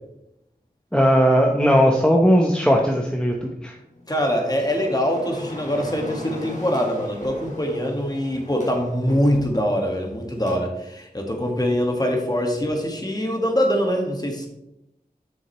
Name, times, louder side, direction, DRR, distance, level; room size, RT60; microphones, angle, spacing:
voice 1, 0.9-3.3 3.6-3.7, equal, 5° left, 0 dB, 0.9 m, -17 dB
sound 1, 3.9-10.6, left 1 dB, 50° left, 1.9 m, -39 dB
voice 2, 4.1-14.5, equal, 25° left, 2 dB, 1.6 m, -23 dB
7.7 x 6.3 x 3.1 m, 0.85 s
wide cardioid pair, 45°, 16 cm